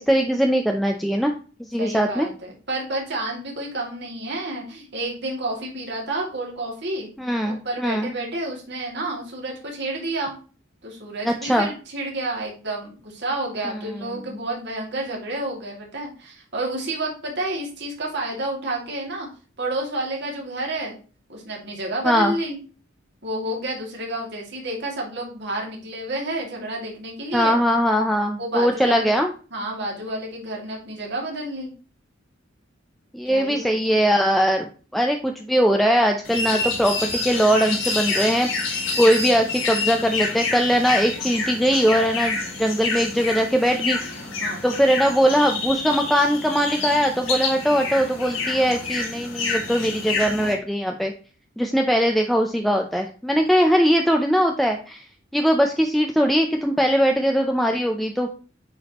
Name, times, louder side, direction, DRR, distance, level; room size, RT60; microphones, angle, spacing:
voice 1, 0.0-1.3 1.7-2.3 7.2-8.1 11.2-11.7 22.0-22.3 27.3-29.3 33.1-44.2 44.6-51.1 51.6-55.0 55.3-58.3, equal, ahead, 2 dB, 0.5 m, -21 dB
voice 2, 1.8-7.1 7.4-10.4 10.8-19.3 19.6-21.0 21.3-22.6 23.2-27.5 28.4-29.1 29.5-31.7 33.3-34.0 44.4-44.6, right 2 dB, 60° right, -1 dB, 2.4 m, -30 dB
sound 1, 36.2-50.5, left 3 dB, 80° left, 2.1 m, -28 dB
8.4 x 4.7 x 3.0 m, 0.37 s
head